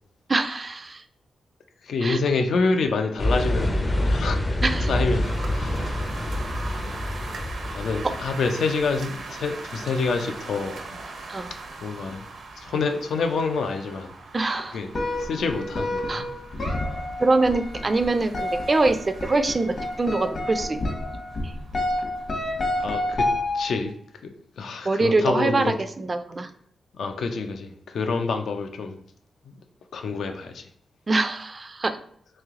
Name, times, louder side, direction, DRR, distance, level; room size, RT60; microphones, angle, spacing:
voice 1, 0.3-1.0 2.0-2.2 4.6-4.9 11.3-11.5 14.3-14.8 16.1-16.3 17.2-20.8 21.4-21.5 24.9-26.5 31.1-32.0, right 3 dB, 30° right, 9 dB, 0.3 m, -24 dB
voice 2, 1.8-4.4 4.8-6.1 7.7-10.8 11.8-12.2 12.6-14.1 14.7-14.9 15.2-16.3 22.8-23.3 23.5-23.9 24.2-25.7 26.9-29.0 29.4-29.6 29.9-30.6, left 4 dB, 80° left, 6 dB, 0.5 m, -27 dB
sound 1, 3.2-8.3, left 1 dB, 25° left, 0.5 m, -26 dB
sound 2, 5.2-23.8, right 3 dB, 70° right, 0.7 m, -41 dB
sound 3, 14.9-23.9, left 1 dB, 55° left, 1.0 m, -29 dB
3.2 x 2.8 x 3.6 m, 0.63 s
wide cardioid pair, 110°, 0 cm